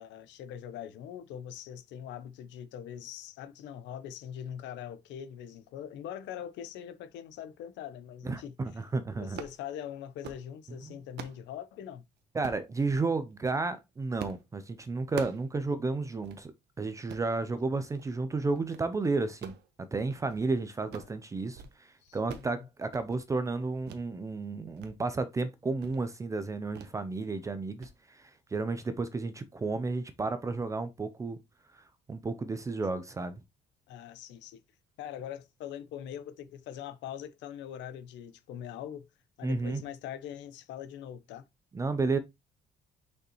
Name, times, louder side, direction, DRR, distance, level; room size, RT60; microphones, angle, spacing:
voice 1, 0.0-8.6 9.2-12.0 17.4-17.5 20.9-21.1 22.0-22.7 33.9-34.6 35.0-39.1 39.4-41.4, left 9 dB, 85° left, 0.8 m, -42 dB
voice 2, 8.2-9.4 10.8-11.0 12.3-16.5 16.8-31.4 31.7-31.8 32.1-33.4 39.4-39.8 41.7-42.2, right 3 dB, 15° right, 0.5 m, -32 dB
sound 1, 9.3-9.6 10.0-10.5 10.9-11.4 12.4-12.7 13.3-13.6 14.2-14.5 14.7-15.5 15.8-15.9 16.2-16.4 16.9-17.3 17.8-18.1 18.4-18.9 19.2-20.5 20.7-21.2 21.4-21.8 22.0-22.5 22.8-23.2 23.8-24.0 24.4-24.9 25.3-25.4 25.8-26.0 26.7-27.0 27.3-27.5 27.8-27.9, right 8 dB, 65° right, 1.1 m, -45 dB
6.4 x 5.4 x 3.0 m
cardioid pair, 165°, 18 cm